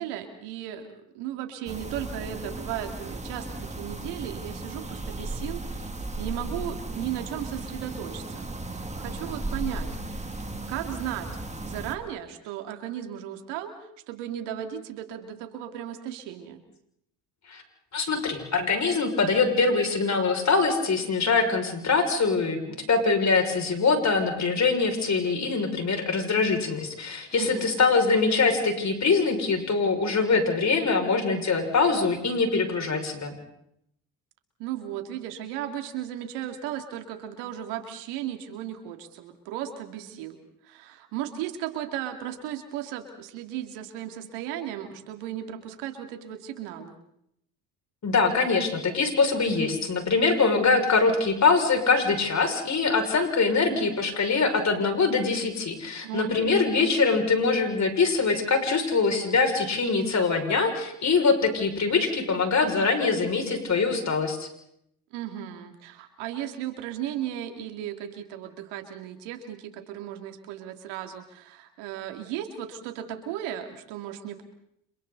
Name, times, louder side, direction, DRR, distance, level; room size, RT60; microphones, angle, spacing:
voice 1, 0.0-8.5 8.9-10.4 10.7-11.3 11.6-13.8 14.1-16.6 27.4-27.7 34.6-40.4 40.6-47.0 56.0-56.8 65.1-74.4, right 11 dB, 85° right, 6 dB, 2.9 m, -36 dB
sound 1, 1.7-12.0, right 2 dB, 15° right, 2.7 m, -35 dB
voice 2, 17.9-22.6 22.9-33.3 48.0-64.5, left 4 dB, 40° left, 3 dB, 6.3 m, -23 dB
30.0 x 27.5 x 4.1 m, 0.74 s
supercardioid pair, 75°, 41 cm